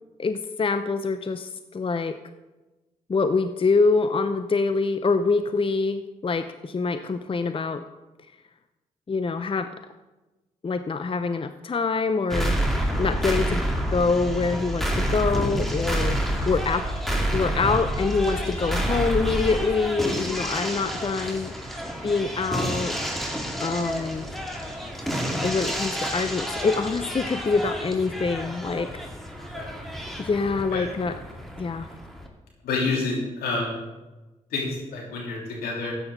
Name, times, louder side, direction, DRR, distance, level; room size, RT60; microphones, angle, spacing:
voice 1, 0.2-2.2 3.1-7.8 9.1-9.7 10.6-12.6 13.0-16.2 16.5-16.8 17.3-21.5 22.0-22.9 23.6-24.3 25.4-29.1 30.2-31.2 31.6-31.9, left 4 dB, 35° left, 10 dB, 0.6 m, -25 dB
sound 1, 12.3-32.3, equal, ahead, 2.4 m, -29 dB
voice 2, 32.6-33.7 34.5-35.9, left 3 dB, 80° left, -3 dB, 3.5 m, -28 dB
13.5 x 9.3 x 3.9 m, 1.1 s
hypercardioid pair, 40°, 16 cm